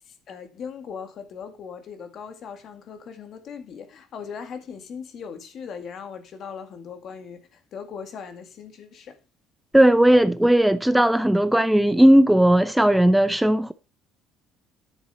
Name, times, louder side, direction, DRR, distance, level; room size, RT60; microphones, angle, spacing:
voice 1, 0.1-9.2, left 6 dB, 50° left, 2.0 m, -39 dB
voice 2, 9.7-13.7, right 1 dB, 5° right, 0.6 m, -17 dB
10.5 x 7.8 x 4.2 m
cardioid pair, 130°, 0 cm